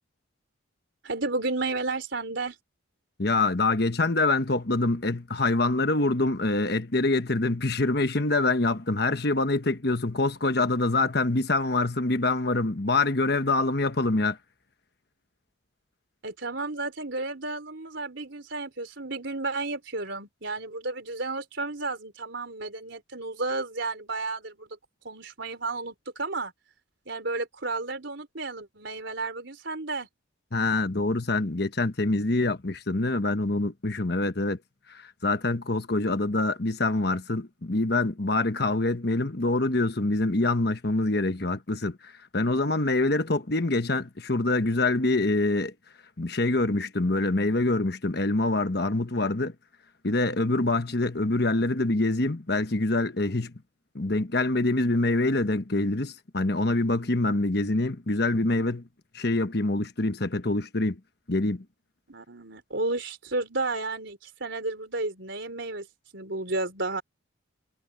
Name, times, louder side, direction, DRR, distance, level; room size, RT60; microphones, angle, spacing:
voice 1, 1.0-2.6 16.2-24.7 25.0-26.5 27.1-30.1 62.1-65.9 66.1-67.0, right 3 dB, 65° right, 4.0 m, -32 dB
voice 2, 3.2-14.4 30.5-34.6 34.9-45.7 46.2-49.5 50.0-53.5 53.9-58.8 59.1-61.0 61.3-61.6, left 2 dB, 50° left, 1.2 m, -25 dB
head